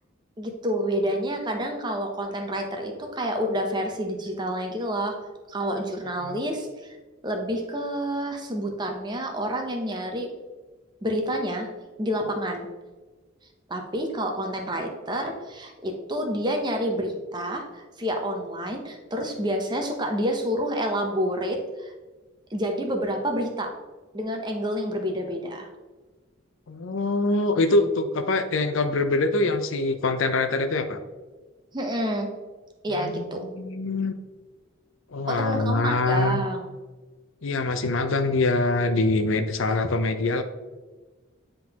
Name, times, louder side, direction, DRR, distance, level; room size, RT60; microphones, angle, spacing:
voice 1, 0.4-5.1 5.5-7.0 7.2-10.3 11.0-11.7 12.0-12.7 13.7-21.9 22.5-23.7 24.1-25.7 31.7-32.3 32.8-33.4 35.3-36.7, equal, 20° right, 3 dB, 0.8 m, -28 dB
voice 2, 26.7-31.0 32.9-34.1 35.1-36.4 37.4-40.4, left 2 dB, 70° left, 8 dB, 0.6 m, -24 dB
9.5 x 3.8 x 2.9 m, 1.3 s
head